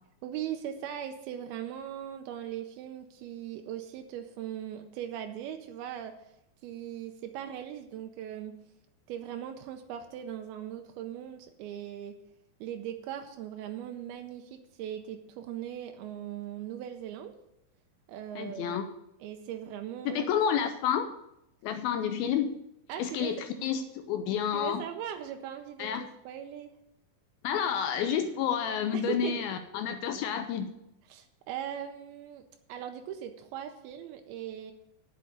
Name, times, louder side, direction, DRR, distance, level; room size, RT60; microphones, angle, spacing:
voice 1, 0.2-6.3 6.6-8.6 9.1-12.2 12.6-17.4 18.1-18.9 19.2-20.3 22.9-23.4 24.5-26.7 28.9-29.4 31.1-32.4 32.7-34.7, right 10 dB, 85° right, 6 dB, 2.6 m, -39 dB
voice 2, 18.4-18.8 20.1-21.1 21.6-22.6 23.0-24.8 25.8-26.1 27.4-30.7, left 8 dB, 80° left, 7 dB, 2.4 m, -30 dB
8.6 x 6.5 x 8.5 m, 0.82 s
omnidirectional pair, 4.4 m